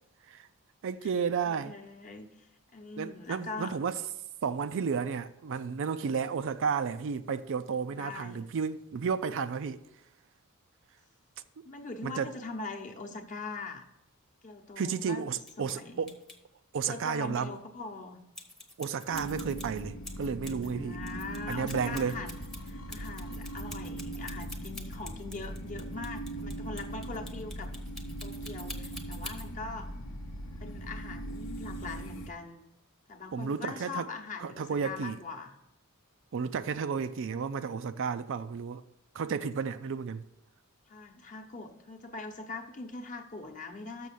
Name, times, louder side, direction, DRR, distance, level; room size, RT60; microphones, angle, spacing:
voice 1, 0.8-1.7 3.0-4.0 4.4-9.8 12.0-12.3 14.8-16.1 16.7-17.5 18.8-21.0 21.5-22.2 33.3-34.1 34.4-35.2 36.3-38.8 39.1-40.3, right 6 dB, 60° right, 0.4 m, -32 dB
voice 2, 1.4-3.8 7.9-8.6 11.6-13.8 14.4-15.2 15.6-16.1 16.8-18.2 20.6-22.4 22.6-27.7 28.2-29.9 30.6-32.6 33.1-35.6 39.5-39.7 40.9-44.1, left 3 dB, 35° left, 0.9 m, -42 dB
sound 1, 15.4-15.7 16.1-16.4 18.3-20.7 21.0-29.5, left 1 dB, ahead, 0.8 m, -46 dB
sound 2, 19.1-32.3, right 1 dB, 65° left, 0.9 m, -40 dB
6.5 x 6.2 x 6.9 m
head